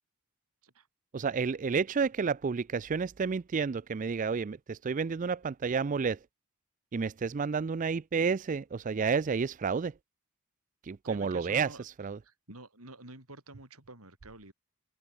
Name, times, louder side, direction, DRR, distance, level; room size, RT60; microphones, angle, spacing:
voice 1, 1.1-6.2 6.9-9.9 10.8-12.2, right 5 dB, 35° right, 0.4 m, -30 dB
voice 2, 11.0-11.8 12.2-14.5, right 2 dB, 80° right, 6.5 m, -49 dB
open air
head